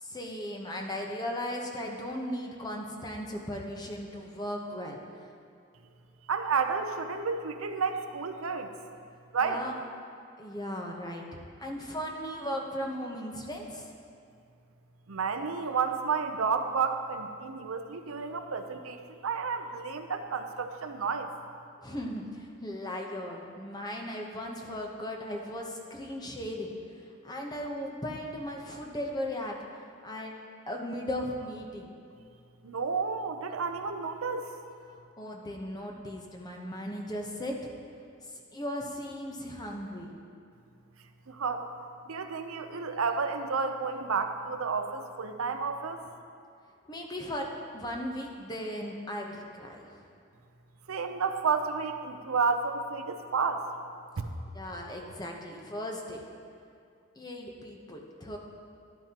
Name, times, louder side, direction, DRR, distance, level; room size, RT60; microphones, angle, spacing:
voice 1, 0.0-5.0 9.4-9.8 10.4-11.3 11.6-13.9 21.8-26.7 27.2-29.6 30.0-30.3 30.7-31.9 35.2-37.7 38.2-40.2 46.9-50.0 54.5-56.2 57.2-58.4, left 1 dB, 20° left, 1 dB, 0.9 m, -37 dB
voice 2, 6.3-8.7 9.3-9.6 15.1-21.3 32.6-34.5 41.3-41.7 42.1-46.0 50.9-53.7 54.2-54.3, right 5 dB, 80° right, 7 dB, 0.6 m, -31 dB
12.0 x 11.5 x 2.9 m, 2.4 s
head